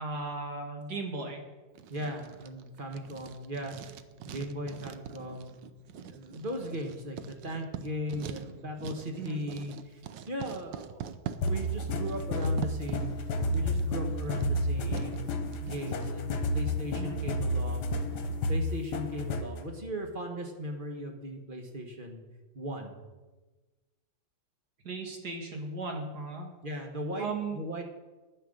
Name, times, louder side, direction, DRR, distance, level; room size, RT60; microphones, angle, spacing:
voice 1, 0.0-1.4 9.2-9.4 16.9-17.2 24.8-26.5 27.2-27.6, right 3 dB, 60° right, 2 dB, 2.2 m, -36 dB
Writing, 1.7-16.1, right 9 dB, 80° right, 1.4 m, -44 dB
voice 2, 1.9-3.7 4.2-5.6 5.9-10.0 10.3-13.1 13.5-15.2 15.6-17.9 18.5-22.2 22.5-23.0 26.6-27.8, equal, 30° right, 3 dB, 1.5 m, -38 dB
sound 1, 11.4-19.6, left 1 dB, 65° left, 1.5 m, -31 dB
10.5 x 9.3 x 6.5 m, 1.2 s
omnidirectional pair, 2.0 m